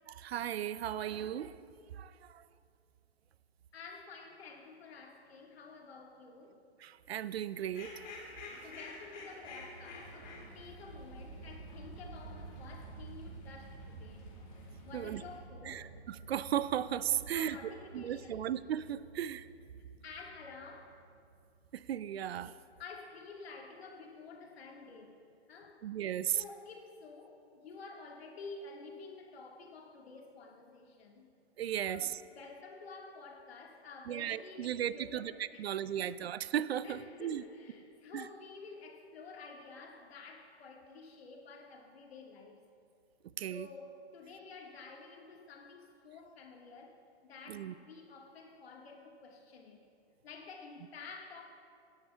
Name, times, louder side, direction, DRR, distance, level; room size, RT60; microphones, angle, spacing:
voice 1, 0.1-1.6 1.9-2.5 6.8-7.9 14.9-15.2 15.6-17.6 17.9-19.5 21.7-22.5 25.8-26.4 31.6-32.2 34.1-37.4 38.1-38.3 43.4-43.7 47.5-47.7, right 10 dB, 70° right, 0.4 m, -36 dB
voice 2, 3.7-6.6 8.6-10.2 10.5-14.3 14.8-15.9 17.2-18.5 20.0-21.0 22.8-25.2 25.5-25.9 26.4-31.3 31.9-36.1 36.8-42.6 43.5-49.8 50.2-51.5, left 4 dB, 65° left, 1.7 m, -50 dB
Fowl, 7.6-15.4, left 3 dB, 45° left, 2.5 m, -52 dB
sound 1, 9.4-21.8, right 3 dB, 25° right, 1.2 m, -51 dB
16.5 x 10.5 x 2.3 m
hypercardioid pair, 165°, 33 cm